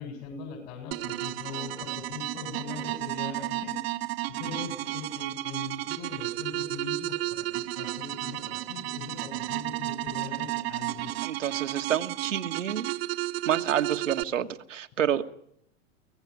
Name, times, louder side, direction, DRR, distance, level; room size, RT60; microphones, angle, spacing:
voice 1, 0.0-3.8 4.3-11.2, left 6 dB, 55° left, 5 dB, 7.2 m, -41 dB
sound 1, 0.9-14.2, right 18 dB, 55° right, 1.2 m, -33 dB
voice 2, 11.2-12.9 13.4-15.3, right 9 dB, 80° right, 8 dB, 1.6 m, -29 dB
24.5 x 17.5 x 9.8 m, 0.72 s
hypercardioid pair, 105°, 37 cm